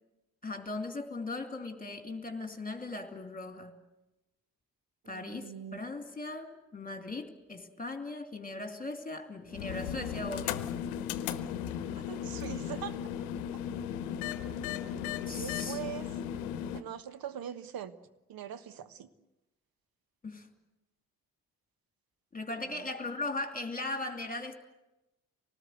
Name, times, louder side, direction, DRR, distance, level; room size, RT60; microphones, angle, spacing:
voice 1, 0.4-3.7 5.1-10.6 15.3-15.8 20.2-20.5 22.3-24.5, left 2 dB, 20° left, 6 dB, 2.7 m, -38 dB
voice 2, 5.0-5.8 12.0-13.0 15.3-16.2 16.7-18.0 18.3-19.1 22.6-22.9, right 10 dB, 55° right, 14 dB, 1.4 m, -42 dB
sound 1, 9.5-16.8, left 9 dB, 80° left, 0.9 m, -36 dB
26.0 x 19.0 x 8.0 m, 0.98 s
hypercardioid pair, 40°, 42 cm